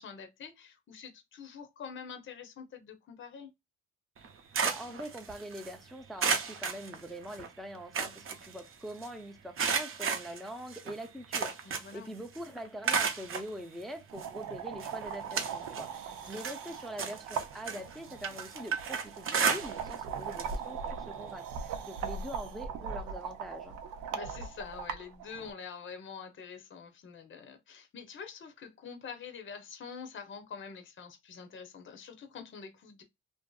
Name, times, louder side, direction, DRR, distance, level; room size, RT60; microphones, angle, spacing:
voice 1, 0.0-3.5 11.6-12.1 24.1-33.0, left 6 dB, 40° left, 0.7 m, -46 dB
sound 1, 4.2-5.7 6.2-7.5 7.8-9.1 9.6-12.1 12.4-13.5 14.2-14.3 14.8-15.9 16.2-20.0 20.3-20.6 20.9-21.0 22.2-22.3, right 6 dB, 45° right, 0.7 m, -33 dB
voice 2, 4.6-23.8, equal, ahead, 0.5 m, -44 dB
sound 2, 14.1-25.5, right 6 dB, 85° right, 0.6 m, -40 dB
2.6 x 2.5 x 2.2 m
cardioid pair, 90°, 30 cm